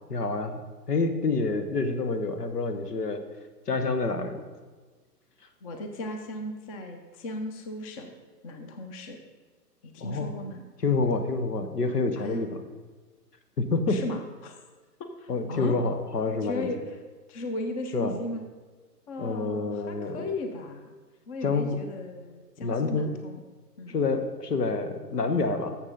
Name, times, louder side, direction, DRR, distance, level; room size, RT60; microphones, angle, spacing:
voice 1, 0.1-0.6 0.9-3.2 3.7-4.4 10.0-10.3 10.8-12.6 13.6-14.0 15.3-16.7 17.9-18.1 19.2-20.2 21.4-21.8 22.6-23.1 23.9-25.8, left 3 dB, 75° left, 8 dB, 1.2 m, -27 dB
voice 2, 5.6-8.1 8.4-9.2 9.8-10.7 12.2-12.5 13.9-14.6 15.2-15.8 16.4-17.0 17.3-18.4 19.1-21.0 21.3-23.4 23.8-24.0, left 2 dB, 20° left, 5 dB, 0.7 m, -36 dB
12.0 x 7.4 x 3.9 m, 1.4 s
figure-of-eight pair, 120°, 48 cm